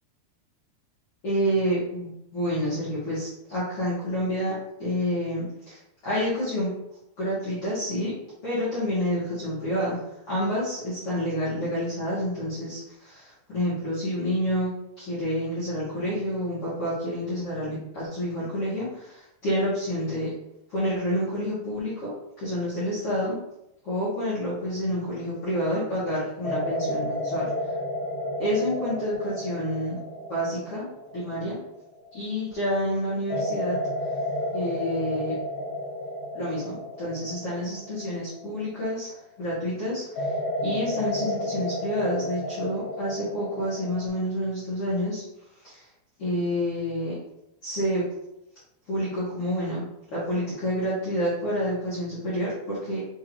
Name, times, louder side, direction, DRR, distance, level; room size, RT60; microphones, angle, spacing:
voice 1, 1.2-6.7 7.2-8.1 8.4-10.0 10.3-14.7 15.0-20.3 20.7-22.1 22.4-23.4 23.8-27.5 28.4-30.0 30.3-30.9 31.1-31.6 32.1-33.8 34.5-35.3 36.3-39.1 39.4-40.3 40.6-45.2 45.6-45.9 46.2-47.2 47.6-48.0 48.9-49.8 50.1-53.0, equal, 80° left, -11 dB, 1.3 m, -28 dB
sound 1, 25.1-25.5 26.4-32.4 33.3-39.3 40.2-44.1, left 1 dB, 65° left, 3.2 m, -32 dB
6.6 x 2.6 x 3.0 m, 0.84 s
omnidirectional pair, 5.1 m